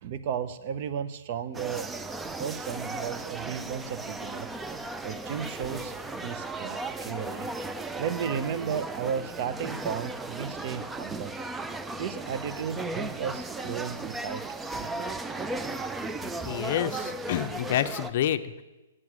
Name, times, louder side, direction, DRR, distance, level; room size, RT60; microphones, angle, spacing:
voice 1, 0.0-1.9 2.4-4.5 5.0-7.5 8.0-11.4 12.0-14.4 14.8-15.1, right 8 dB, 45° right, 12 dB, 0.6 m, -34 dB
sound 1, 1.5-18.1, right 2 dB, 10° right, 0.4 m, -36 dB
voice 2, 16.4-18.6, left 11 dB, 50° left, 10 dB, 0.5 m, -28 dB
8.0 x 7.6 x 6.2 m, 1.1 s
hypercardioid pair, 145°, 0 cm